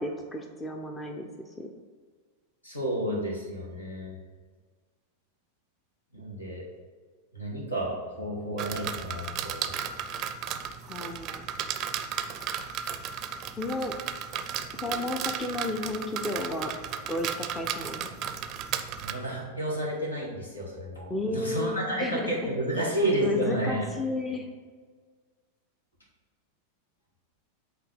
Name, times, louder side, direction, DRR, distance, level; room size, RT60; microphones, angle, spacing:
voice 1, 0.0-1.7 10.8-11.5 13.6-13.9 14.8-16.7 17.1-18.1 21.1-22.6 23.2-24.5, left 2 dB, 15° left, 3 dB, 0.7 m, -33 dB
voice 2, 2.6-4.2 6.1-6.7 7.3-9.7 19.0-23.9, right 1 dB, 80° left, -2 dB, 2.0 m, -31 dB
sound 1, 8.6-19.1, right 8 dB, 35° right, 0.5 m, -34 dB
8.4 x 3.4 x 5.6 m, 1.5 s
figure-of-eight pair, 90°, 0 cm